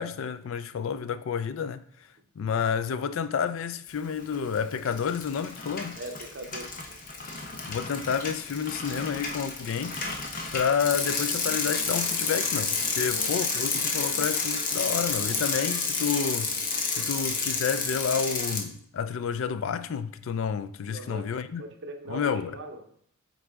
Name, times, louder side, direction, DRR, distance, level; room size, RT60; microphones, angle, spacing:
voice 1, 0.0-1.8 2.4-6.0 7.7-10.0 10.5-16.5 16.9-21.6 22.1-22.6, left 6 dB, 65° left, 0.3 m, -30 dB
Bicycle, 4.2-4.6 4.9-18.6, left 4 dB, 35° left, 0.8 m, -30 dB
voice 2, 6.0-6.7 12.9-13.2 20.9-21.3 21.6-22.8, right 1 dB, 55° right, 0.9 m, -40 dB
7.8 x 3.9 x 3.6 m
head